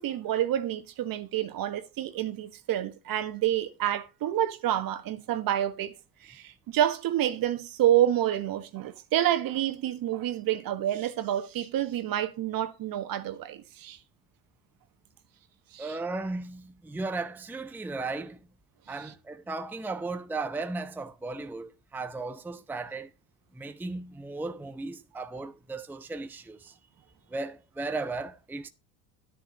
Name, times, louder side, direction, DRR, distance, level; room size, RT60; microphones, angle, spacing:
voice 1, 0.0-5.9 6.2-14.0 15.7-16.0, right 12 dB, 55° right, 1.5 m, -28 dB
voice 2, 15.8-18.5 18.9-23.1 23.5-26.8 27.3-28.7, right 3 dB, 5° right, 0.7 m, -36 dB
10.5 x 9.7 x 3.9 m
supercardioid pair, 95°, 42 cm